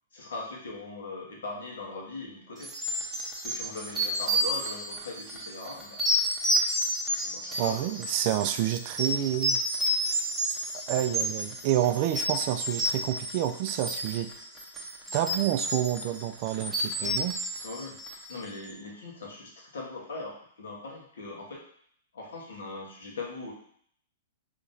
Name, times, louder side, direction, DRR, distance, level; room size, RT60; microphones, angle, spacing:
voice 1, 0.1-2.7 3.4-6.0 7.2-7.9 17.0-17.2 17.6-18.0 18.3-21.6 22.1-23.5, left 3 dB, 80° left, -2 dB, 1.2 m, -40 dB
sound 1, 2.6-18.4, equal, 10° right, 0.8 m, -30 dB
voice 2, 7.6-9.6 10.1-10.2 10.9-14.3 15.1-17.3, right 12 dB, 45° right, 9 dB, 0.3 m, -28 dB
3.8 x 2.9 x 2.6 m, 0.63 s
hypercardioid pair, 130°, 0 cm